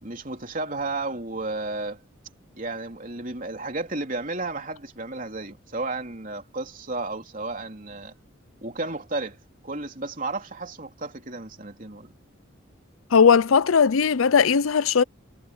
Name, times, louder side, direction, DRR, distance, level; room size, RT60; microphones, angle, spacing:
voice 1, 0.0-2.0 2.6-8.1 8.6-9.4 9.6-12.2, right 2 dB, 40° right, 3.3 m, -33 dB
voice 2, 13.1-15.0, left 6 dB, 85° left, 0.6 m, -18 dB
head